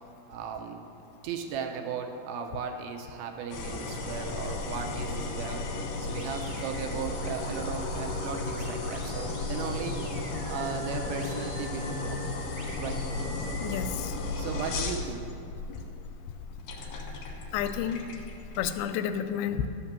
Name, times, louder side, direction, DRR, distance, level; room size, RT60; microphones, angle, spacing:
voice 1, 0.3-0.9 1.2-5.6 6.0-10.0 10.3-12.2 12.8-13.0 14.1-15.3, right 6 dB, 80° right, 3 dB, 2.4 m, -37 dB
sound 1, 3.5-18.8, left 3 dB, 70° left, 2.6 m, -34 dB
sound 2, 6.1-13.9, right 1 dB, 55° right, 1.1 m, -46 dB
voice 2, 13.6-14.1 17.5-18.0 18.6-19.7, left 9 dB, 85° left, 9 dB, 2.5 m, -30 dB
12.5 x 5.8 x 7.3 m, 2.7 s
omnidirectional pair, 4.6 m